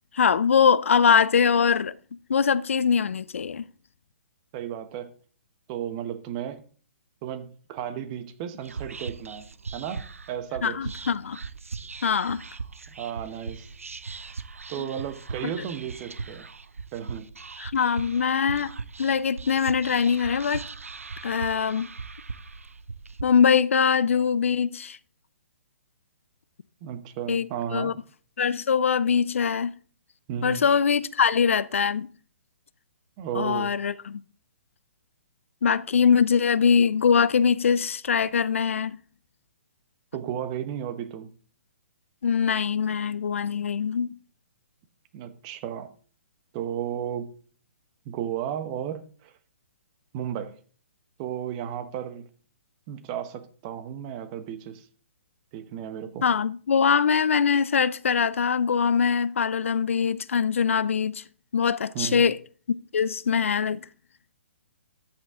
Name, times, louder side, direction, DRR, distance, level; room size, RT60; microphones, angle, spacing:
voice 1, 0.1-2.0 2.3-3.6 10.6-11.4 12.0-12.4 14.8-14.9 17.6-18.7 19.0-20.7 21.2-21.9 23.2-25.0 27.3-27.9 28.4-29.7 30.4-32.1 33.3-34.2 35.6-39.0 42.2-44.1 56.2-61.2 61.5-62.4 62.9-63.8, left 6 dB, 70° left, 0.5 m, -22 dB
voice 2, 4.5-5.1 5.7-6.6 7.2-10.9 12.9-13.7 14.7-16.5 16.9-17.3 26.8-27.9 30.3-30.7 33.2-33.7 40.1-41.3 45.1-45.9 46.5-47.3 48.0-49.3 50.1-50.6 51.2-52.3 52.9-54.9 55.5-56.3 61.9-62.3, right 9 dB, 35° right, 1.1 m, -34 dB
Whispering, 8.6-23.2, right 4 dB, 85° right, 0.6 m, -39 dB
13.0 x 5.8 x 3.7 m
hypercardioid pair, 130°, 7 cm